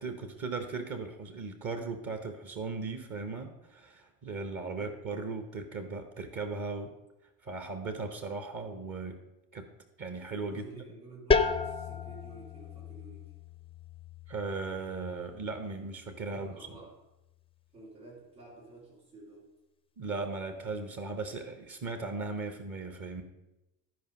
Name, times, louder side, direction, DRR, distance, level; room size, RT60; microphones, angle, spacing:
voice 1, 0.0-6.9 7.4-9.2 9.5-9.7 10.0-10.6 14.3-16.8 20.0-23.2, right 3 dB, 40° right, 7 dB, 1.1 m, -37 dB
voice 2, 10.3-13.4 16.3-16.9 17.7-19.5, right 3 dB, 80° right, -8 dB, 3.8 m, -51 dB
sound 1, 11.3-16.8, left 4 dB, 10° left, 0.5 m, -34 dB
12.0 x 5.2 x 5.2 m, 0.97 s
figure-of-eight pair, 50°, 49 cm